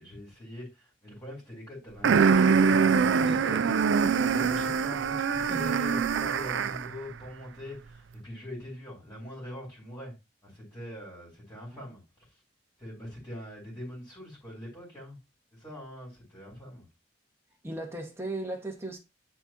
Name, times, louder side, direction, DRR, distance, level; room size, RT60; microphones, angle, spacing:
voice 1, 0.0-3.7 4.2-10.1 10.4-12.4 12.8-15.2 15.5-16.8, left 1 dB, 20° left, 3.7 m, -43 dB
sound 1, 2.0-6.9, right 5 dB, 90° right, 0.4 m, -24 dB
voice 2, 17.6-19.0, right 1 dB, 15° right, 1.6 m, -37 dB
10.0 x 4.4 x 3.0 m
head